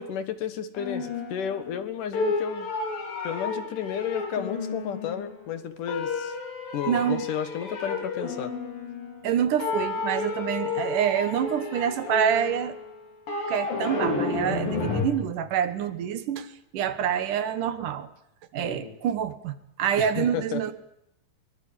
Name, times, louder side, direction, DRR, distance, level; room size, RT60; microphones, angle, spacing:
voice 1, 0.0-2.7 3.2-6.3 6.7-8.5 18.6-19.0 20.0-20.6, left 8 dB, 70° left, 11 dB, 3.1 m, -32 dB
sound 1, 0.8-1.9 2.1-5.4 5.9-9.3 9.6-15.1, left 3 dB, 90° left, 6.0 m, -31 dB
voice 2, 6.9-7.3 9.2-12.8 13.5-18.1 18.5-20.7, right 9 dB, 70° right, 12 dB, 2.7 m, -27 dB
23.0 x 21.5 x 8.9 m, 0.78 s
omnidirectional pair, 3.9 m